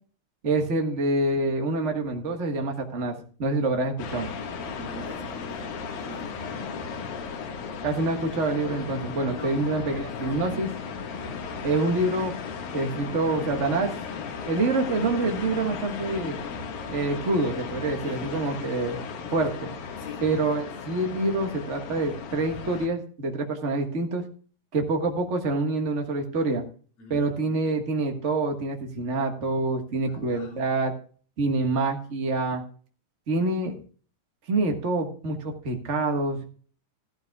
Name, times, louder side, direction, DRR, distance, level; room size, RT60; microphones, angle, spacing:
voice 1, 0.4-3.1 3.4-4.3 7.8-10.7 11.6-12.3 12.7-13.9 14.5-16.4 16.9-19.7 20.2-24.2 24.7-26.6 27.1-30.9 31.4-32.6 33.3-33.8 34.5-36.4, right 2 dB, 65° right, 4 dB, 0.7 m, -26 dB
sound 1, 4.0-22.9, left 5 dB, 90° left, 3.3 m, -36 dB
voice 2, 4.5-6.4 9.3-9.6 9.9-10.8 18.0-18.2 20.0-20.3 27.0-27.6 30.1-30.6, left 1 dB, 55° left, -2 dB, 5.6 m, -43 dB
14.5 x 13.0 x 2.3 m, 0.42 s
omnidirectional pair, 3.9 m